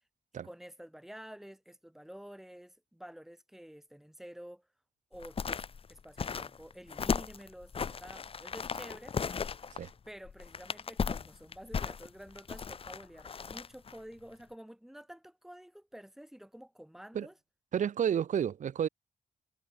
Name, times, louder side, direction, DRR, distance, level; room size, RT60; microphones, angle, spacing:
voice 1, 0.4-4.7 5.1-5.6 5.9-9.2 9.6-9.7 10.0-17.3, equal, ahead, 2.9 m, -50 dB
sound 1, 5.1-14.0 14.3-14.4, left 6 dB, 40° left, 1.1 m, -36 dB
voice 2, 17.7-18.9, right 9 dB, 60° right, 0.8 m, -30 dB
wide cardioid pair, 125°, 14 cm